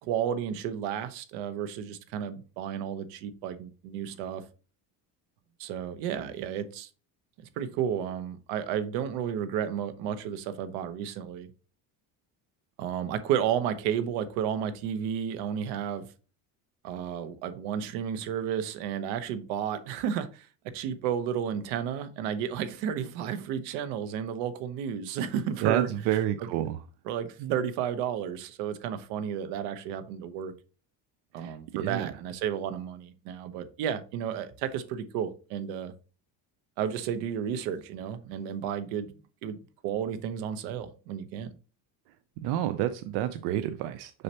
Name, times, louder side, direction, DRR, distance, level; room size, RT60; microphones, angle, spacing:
voice 1, 0.0-4.4 5.6-6.9 7.6-11.5 12.8-16.1 16.8-20.5 20.7-25.9 26.4-26.5 27.0-30.5 31.3-35.9 36.8-39.6 39.8-41.5, right 8 dB, 85° right, 1.0 m, -32 dB
voice 2, 25.6-26.8 27.4-27.5 31.4-32.1 42.4-44.2, right 12 dB, 70° right, 0.6 m, -29 dB
6.6 x 5.6 x 2.9 m
cardioid pair, 155°, 41 cm